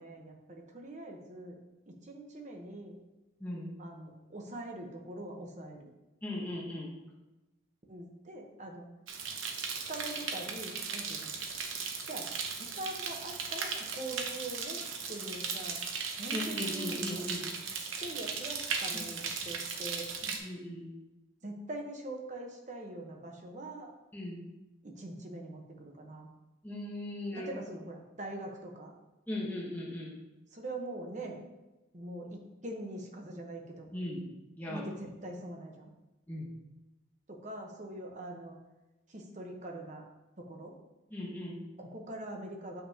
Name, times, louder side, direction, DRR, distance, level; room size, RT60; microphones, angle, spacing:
voice 1, 0.0-1.6 1.9-2.9 3.8-5.9 7.9-8.8 9.9-11.3 12.1-12.3 12.6-14.8 15.1-15.9 16.2-17.2 18.0-20.1 21.4-23.9 24.8-26.3 27.4-28.9 30.5-31.4 31.9-33.9 34.7-35.9 37.3-38.6 39.1-40.0 40.4-40.7 41.8-42.8, right 1 dB, 35° right, 2 dB, 1.0 m, -43 dB
voice 2, 3.4-3.8 6.2-7.0 16.3-17.4 18.9-19.1 20.2-20.9 24.1-24.4 26.6-27.6 29.3-30.2 33.9-34.3 34.6-34.9 36.3-36.5 41.1-41.6, left 1 dB, 10° left, -4 dB, 1.0 m, -38 dB
sound 1, 9.1-20.4, right 5 dB, 85° right, 0.9 m, -37 dB
7.8 x 5.7 x 2.8 m, 1.0 s
head